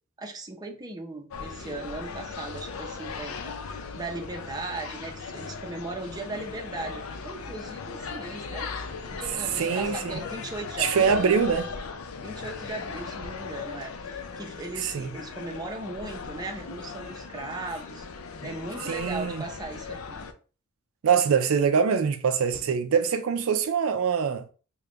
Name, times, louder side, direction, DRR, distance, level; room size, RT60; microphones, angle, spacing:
voice 1, 0.2-8.7 9.1-11.4 12.2-18.1 18.4-20.2, right 2 dB, 20° right, 0.6 m, -38 dB
sound 1, 1.3-20.3, left 5 dB, 75° left, 0.5 m, -38 dB
voice 2, 9.6-10.1 10.8-11.6 14.9-15.1 18.9-19.4 21.0-24.4, right 6 dB, 70° right, 0.4 m, -24 dB
3.4 x 2.2 x 3.8 m
head